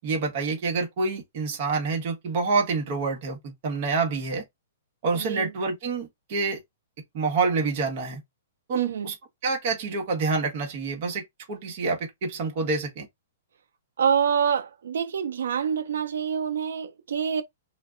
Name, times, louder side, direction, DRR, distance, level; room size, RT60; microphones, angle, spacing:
voice 1, 0.0-4.4 5.0-6.6 7.1-8.2 8.7-9.1 9.4-11.2 11.5-13.1, right 4 dB, 35° right, 0.9 m, -27 dB
voice 2, 5.1-5.5 8.7-9.1 14.0-17.4, right 7 dB, 85° right, 0.4 m, -26 dB
2.2 x 2.1 x 3.6 m
hypercardioid pair, 175°, 0 cm